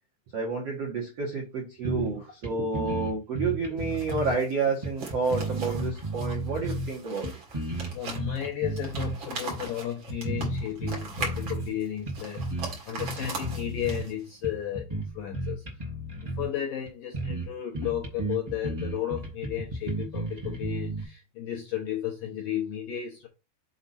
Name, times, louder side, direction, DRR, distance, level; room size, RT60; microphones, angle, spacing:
voice 1, 0.3-7.3, right 4 dB, 80° right, 1.4 m, -30 dB
sound 1, 1.8-2.2 2.4-2.5 2.7-4.4 4.8-6.9 7.2-9.2 9.5-9.7 10.1-11.7 12.1-12.7 13.0-14.0 14.4-16.5 16.8-16.9 17.1-17.5 17.7-21.0, right 1 dB, 35° right, 0.6 m, -33 dB
sound 2, 3.8-14.3, right 3 dB, 65° right, 1.2 m, -40 dB
voice 2, 7.9-15.6 16.2-23.3, left 11 dB, 75° left, 2.0 m, -34 dB
7.1 x 4.2 x 4.2 m
omnidirectional pair, 5.3 m